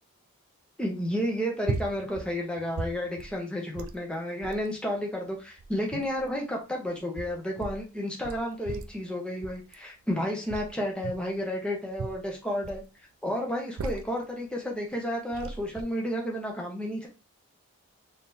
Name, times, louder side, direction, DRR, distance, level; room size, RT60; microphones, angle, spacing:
voice 1, 0.8-12.8 13.2-17.1, equal, 5° left, -1 dB, 0.8 m, -31 dB
sound 1, 1.6-2.3 2.6-3.4 3.7-4.0 4.4-4.7 5.4-6.3 7.0-7.8 8.2-9.0 9.4-9.7 10.5-11.3 11.9-12.9 13.5-14.2 14.9-15.0 15.3-15.8, right 4 dB, 65° right, 0.4 m, -37 dB
3.7 x 3.4 x 2.7 m, 0.30 s
head